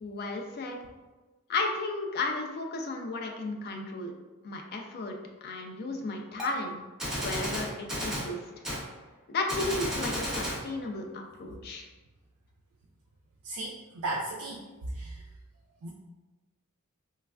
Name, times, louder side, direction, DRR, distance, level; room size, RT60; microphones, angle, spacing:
voice 1, 0.0-0.8 1.5-4.1 4.4-5.2 5.4-6.7 7.2-8.4 9.3-11.9, left 3 dB, 45° left, 2 dB, 0.4 m, -34 dB
Gunshot gunfire, 6.4-6.5 7.0-8.3 8.6-8.8 9.5-10.6, equal, 5° right, 0.6 m, -32 dB
voice 2, 13.4-15.3 15.8-15.9, right 2 dB, 75° right, -2 dB, 0.4 m, -36 dB
3.2 x 2.2 x 2.3 m, 1.2 s
head